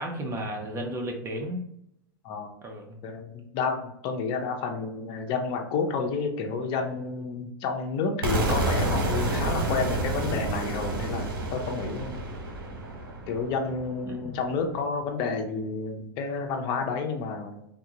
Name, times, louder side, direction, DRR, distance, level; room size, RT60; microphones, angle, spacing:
voice 1, 0.0-1.6 2.6-3.0 14.0-14.3, equal, 25° right, 2 dB, 0.8 m, -33 dB
voice 2, 3.0-12.2 13.3-17.6, left 4 dB, 45° left, 3 dB, 0.7 m, -30 dB
sound 1, 8.2-14.1, right 2 dB, 75° right, 1.1 m, -29 dB
3.6 x 2.3 x 3.0 m, 0.78 s
hypercardioid pair, 115°, 12 cm